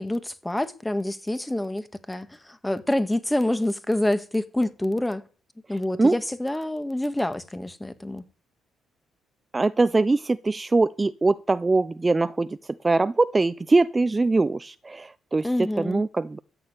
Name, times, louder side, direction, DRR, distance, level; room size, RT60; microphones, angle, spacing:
voice 1, 0.0-5.2 5.7-8.2 15.4-16.0, left 1 dB, 10° left, 1.8 m, -27 dB
voice 2, 9.5-12.6 12.8-15.5 15.8-16.4, right 3 dB, 20° right, 0.6 m, -22 dB
14.0 x 8.9 x 9.1 m
cardioid pair, 90°, 0 cm